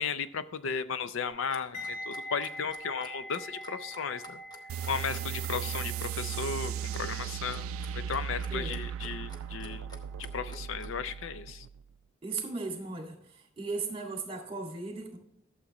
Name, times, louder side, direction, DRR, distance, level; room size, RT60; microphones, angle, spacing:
voice 1, 0.0-4.4 4.9-9.9 10.3-11.7, left 6 dB, 70° left, 13 dB, 0.5 m, -35 dB
Clock, 1.3-11.0, left 2 dB, 20° left, 1.0 m, -51 dB
sound 1, 1.7-10.7 11.0-11.3, equal, 40° left, 3.1 m, -45 dB
sound 2, 4.7-11.8, right 8 dB, 85° right, 0.3 m, -37 dB
voice 2, 12.2-13.2 13.6-15.2, right 3 dB, 25° right, 2 dB, 1.8 m, -36 dB
13.0 x 7.2 x 3.0 m, 0.75 s
head